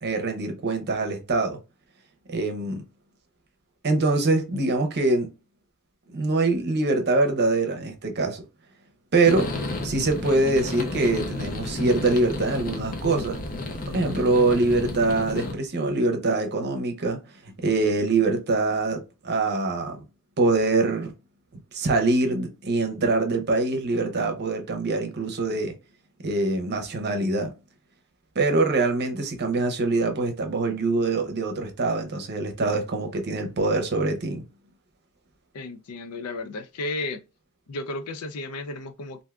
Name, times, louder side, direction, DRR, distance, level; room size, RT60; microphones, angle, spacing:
voice 1, 0.0-1.6 2.3-2.8 3.8-5.3 6.1-8.4 9.1-9.5 9.8-13.4 13.9-17.2 17.6-20.0 20.4-21.1 21.7-25.7 26.2-27.5 28.4-34.4, right 3 dB, 50° right, 0.7 m, -24 dB
sound 1, 9.2-15.5, left 2 dB, 40° left, 0.6 m, -32 dB
voice 2, 35.5-37.2 37.7-39.2, left 2 dB, 90° left, 0.5 m, -33 dB
3.3 x 2.6 x 2.3 m
head